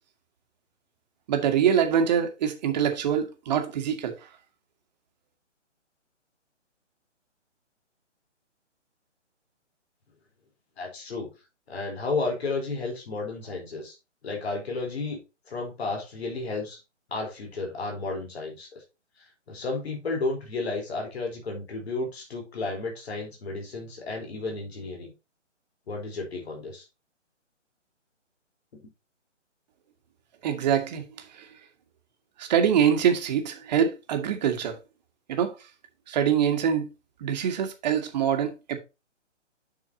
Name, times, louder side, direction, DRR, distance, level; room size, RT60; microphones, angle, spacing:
voice 1, 1.3-4.1 30.4-31.0 31.3-31.4 32.4-34.8 35.3-35.5 36.1-36.9 37.2-38.8, right 8 dB, 35° right, 1.8 m, -24 dB
voice 2, 10.8-11.3 11.7-13.9 14.2-15.2 15.5-16.8 17.1-18.7 19.5-25.1 25.9-26.9, left 3 dB, 55° left, 4.0 m, -32 dB
9.2 x 6.3 x 2.8 m
figure-of-eight pair, 140°, 37 cm